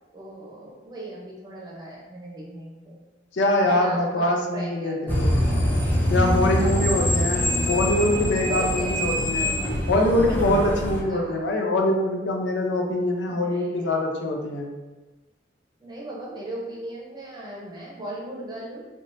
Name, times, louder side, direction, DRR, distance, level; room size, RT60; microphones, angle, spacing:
voice 1, 0.1-3.0 3.7-5.2 6.6-7.3 8.4-9.0 11.1-11.4 13.2-14.0 15.8-18.8, right 1 dB, 25° right, -5 dB, 0.8 m, -38 dB
voice 2, 3.3-5.3 6.1-9.5 9.9-14.7, left 1 dB, 70° left, 1 dB, 0.5 m, -23 dB
sound 1, 5.1-11.0, left 1 dB, 10° left, 0.4 m, -24 dB
3.5 x 2.5 x 2.6 m, 1.2 s
head